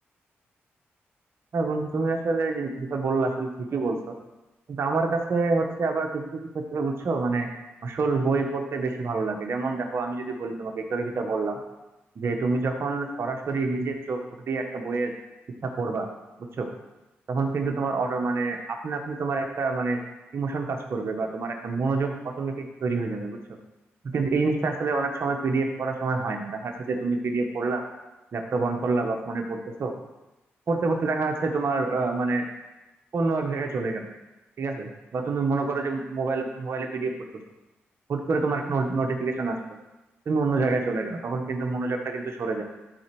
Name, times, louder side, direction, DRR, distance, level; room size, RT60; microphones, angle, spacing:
voice 1, 1.5-4.1 4.7-7.5 7.8-11.6 12.1-15.1 15.6-16.1 16.6-16.7 17.3-20.0 20.3-23.4 24.0-27.8 28.3-29.9 30.7-32.4 33.1-34.0 34.6-37.1 38.1-39.6 40.2-42.6, right 3 dB, 60° right, 3 dB, 1.6 m, -27 dB
12.5 x 4.5 x 6.2 m, 1.0 s
cardioid pair, 55°, 5 cm